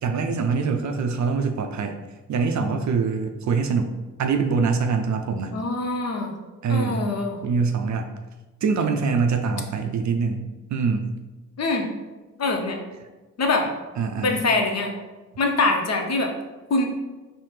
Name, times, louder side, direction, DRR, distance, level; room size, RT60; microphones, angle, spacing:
voice 1, 0.0-2.0 2.3-3.9 4.2-5.5 6.6-7.1 7.4-8.1 8.6-11.1 14.0-14.4, right 5 dB, 50° right, 5 dB, 0.5 m, -24 dB
voice 2, 5.5-6.3 6.7-7.4 11.6-11.8 12.4-12.8 13.4-13.7 14.2-14.9 15.4-16.3 16.7-16.9, left 3 dB, 45° left, 3 dB, 0.7 m, -23 dB
4.0 x 2.0 x 3.3 m, 1.2 s
hypercardioid pair, 45°, 38 cm